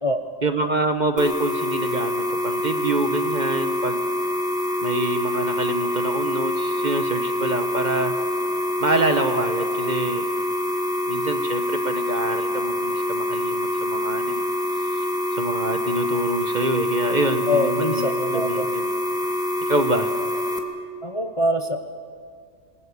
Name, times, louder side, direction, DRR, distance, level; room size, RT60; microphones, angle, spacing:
voice 1, 0.4-4.0 4.8-8.1 8.8-10.3 11.1-14.4 14.8-15.0 15.3-18.0 18.3-18.8 19.7-20.1, right 2 dB, 35° right, 7 dB, 1.2 m, -26 dB
sound 1, 1.2-20.6, left 1 dB, 5° right, 2.0 m, -25 dB
voice 2, 17.5-18.7 21.0-21.8, left 1 dB, 25° left, 6 dB, 0.9 m, -24 dB
27.5 x 20.0 x 7.1 m, 2.1 s
omnidirectional pair, 1.4 m